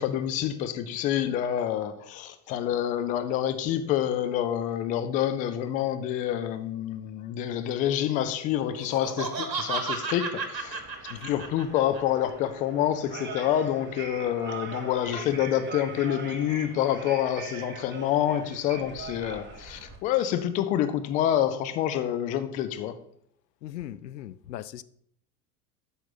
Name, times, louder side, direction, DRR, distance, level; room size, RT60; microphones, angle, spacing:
voice 1, 0.0-10.8 11.2-23.0, left 11 dB, 20° left, 0.3 m, -27 dB
Laughter, 8.8-12.0, right 4 dB, 85° right, 1.2 m, -33 dB
sound 1, 10.5-20.0, right 4 dB, 20° right, 1.4 m, -42 dB
voice 2, 11.1-11.5 23.6-24.8, left 12 dB, 75° left, 0.6 m, -39 dB
8.8 x 6.1 x 4.0 m
figure-of-eight pair, 80°, 50 cm